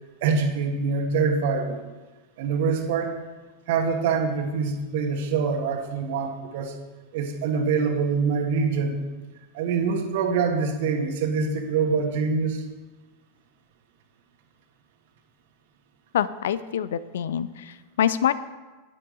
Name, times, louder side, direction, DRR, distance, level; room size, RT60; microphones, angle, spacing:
voice 1, 0.2-1.8 2.4-3.1 3.7-6.7 7.1-9.1 9.5-12.6, right 5 dB, 50° right, 4 dB, 1.6 m, -25 dB
voice 2, 16.1-18.3, left 9 dB, 60° left, 16 dB, 0.4 m, -25 dB
12.0 x 9.9 x 3.9 m, 1.3 s
figure-of-eight pair, 90°, 0 cm